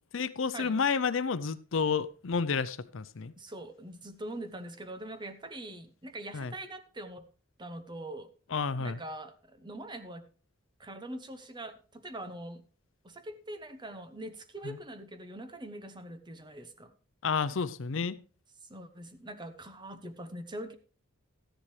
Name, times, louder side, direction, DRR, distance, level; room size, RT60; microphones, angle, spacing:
voice 1, 0.1-3.3 6.3-6.5 8.5-9.0 14.6-14.8 17.2-18.2, left 5 dB, 65° left, 15 dB, 0.6 m, -30 dB
voice 2, 3.4-7.3 7.6-8.3 8.8-10.3 10.8-12.6 13.0-16.9 18.7-20.7, right 1 dB, 20° right, 10 dB, 1.0 m, -43 dB
13.5 x 10.0 x 3.2 m, 0.37 s
head